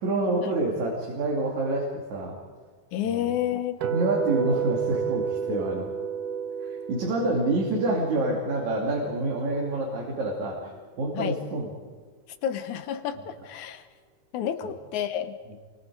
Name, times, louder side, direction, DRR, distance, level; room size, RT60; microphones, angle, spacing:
voice 1, 0.0-2.4 3.1-3.3 3.9-5.9 6.6-10.7 11.0-11.7 14.6-14.7, right 2 dB, 70° right, -2 dB, 4.2 m, -27 dB
voice 2, 2.9-3.8 11.1-11.4 12.4-13.8 14.3-15.4, left 10 dB, 75° left, 10 dB, 2.5 m, -30 dB
sound 1, 3.8-9.9, right 7 dB, 90° right, 2.7 m, -32 dB
28.5 x 24.0 x 4.9 m, 1.5 s
omnidirectional pair, 3.4 m